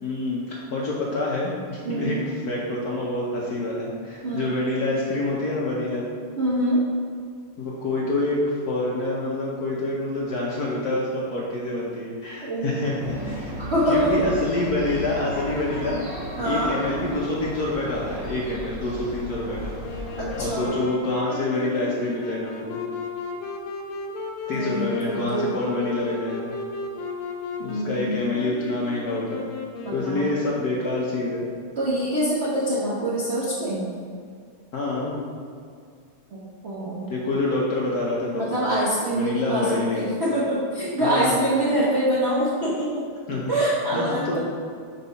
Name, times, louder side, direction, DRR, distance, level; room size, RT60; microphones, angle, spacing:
voice 1, 0.0-2.2 2.4-6.1 7.6-13.5 13.9-16.0 16.4-19.7 20.4-22.8 24.5-26.5 27.6-29.5 29.9-31.5 34.7-35.2 37.1-38.7 39.1-40.1 41.0-41.4 43.3-43.5 43.9-44.4, left 2 dB, 60° left, -4 dB, 1.1 m, -27 dB
voice 2, 1.8-2.3 4.2-4.6 6.4-6.8 12.4-12.9 13.6-14.3 16.4-16.7 20.2-20.7 24.5-25.5 27.6-28.3 29.8-30.3 31.8-33.8 36.3-37.1 38.3-44.4, right 1 dB, 50° right, -8 dB, 0.7 m, -25 dB
sound 1, 13.0-20.7, right 1 dB, 35° right, 1.8 m, -35 dB
Wind instrument woodwind instrument, 19.8-30.9, left 4 dB, 85° left, 1.6 m, -35 dB
4.7 x 4.0 x 5.5 m, 2.1 s
omnidirectional pair, 2.4 m